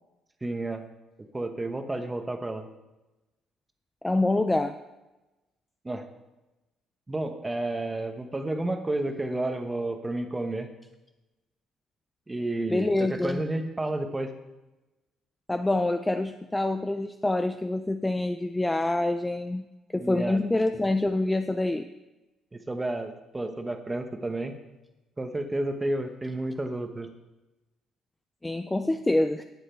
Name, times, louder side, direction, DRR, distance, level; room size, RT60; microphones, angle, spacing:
voice 1, 0.4-0.8 1.3-2.7 5.8-6.1 7.1-10.7 12.3-14.3 19.9-20.4 22.5-24.5 25.2-27.1, right 2 dB, 10° right, 6 dB, 1.0 m, -31 dB
voice 2, 4.0-4.8 12.7-13.4 15.5-19.7 19.9-21.9 28.4-29.4, left 2 dB, 10° left, 8 dB, 0.4 m, -26 dB
18.5 x 7.5 x 4.5 m, 1.1 s
cardioid pair, 165°, 0 cm